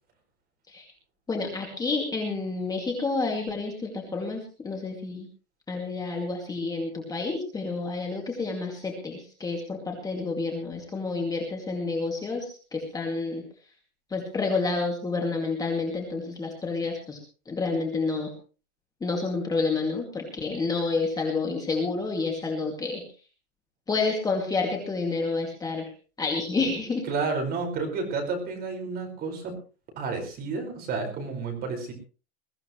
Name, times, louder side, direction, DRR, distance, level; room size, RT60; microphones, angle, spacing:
voice 1, 1.3-5.3 5.7-13.4 14.1-17.2 17.5-18.3 19.0-23.0 23.9-25.8 26.2-27.0, left 3 dB, 10° left, 1 dB, 2.4 m, -29 dB
voice 2, 27.0-29.5 30.0-31.9, right 4 dB, 30° right, 3 dB, 5.1 m, -31 dB
22.0 x 15.0 x 3.1 m, 0.36 s
supercardioid pair, 165°, 33 cm